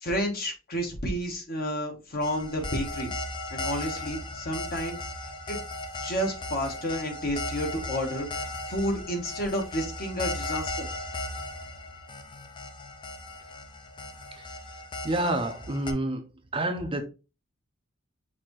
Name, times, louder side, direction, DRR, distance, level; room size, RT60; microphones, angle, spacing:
voice 1, 0.0-3.1 3.5-5.0 5.5-5.6 6.0-10.9, equal, 50° left, 1.3 m, -31 dB
sound 1, 2.2-15.9, left 2 dB, 25° left, 0.5 m, -37 dB
voice 2, 15.0-16.2 16.5-17.0, right 1 dB, 25° right, 0.6 m, -28 dB
5.9 x 2.7 x 3.2 m
head